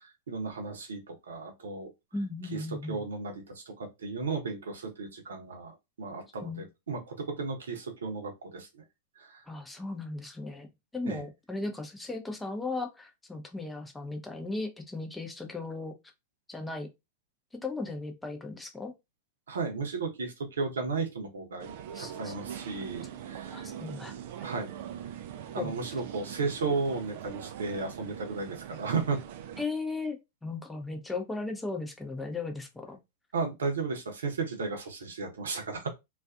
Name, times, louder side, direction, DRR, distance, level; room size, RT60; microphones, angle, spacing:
voice 1, 0.3-1.0 1.3-1.9 2.5-8.7 9.2-9.4 11.0-11.2 19.5-21.7 22.0-23.7 24.4-24.7 25.5-29.2 33.3-35.9, right 4 dB, 75° right, 0.7 m, -34 dB
voice 2, 2.1-3.0 6.4-6.6 9.5-10.7 10.9-15.9 16.5-16.9 17.6-18.9 21.9-22.3 23.5-24.2 25.6-25.8 29.6-33.0, left 3 dB, 10° left, 0.6 m, -36 dB
sound 1, 21.6-29.7, right 10 dB, 55° right, 0.3 m, -42 dB
2.4 x 2.4 x 2.3 m
hypercardioid pair, 100°, 0 cm